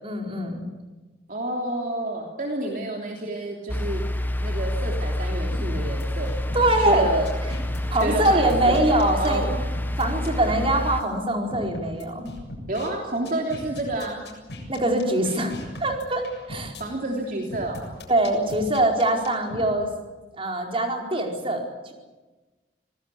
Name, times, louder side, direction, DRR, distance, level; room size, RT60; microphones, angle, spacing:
voice 1, 0.0-0.6 6.5-7.1 7.9-9.5 10.0-12.3 14.7-15.5 15.8-16.7 18.1-19.9 20.4-21.9, right 1 dB, 30° right, 2 dB, 4.7 m, -23 dB
voice 2, 1.3-4.0 4.4-6.4 6.8-7.3 8.0-9.4 12.7-14.2 16.8-17.8, right 1 dB, 50° right, 0 dB, 3.1 m, -29 dB
sound 1, 3.7-11.0, left 1 dB, 10° left, 1.0 m, -28 dB
sound 2, 5.5-6.9 7.3-10.7 11.0-11.1 11.5-12.9 13.3-16.8 17.5-19.6, left 1 dB, 75° left, 7.4 m, -38 dB
26.5 x 18.5 x 8.5 m, 1.2 s
head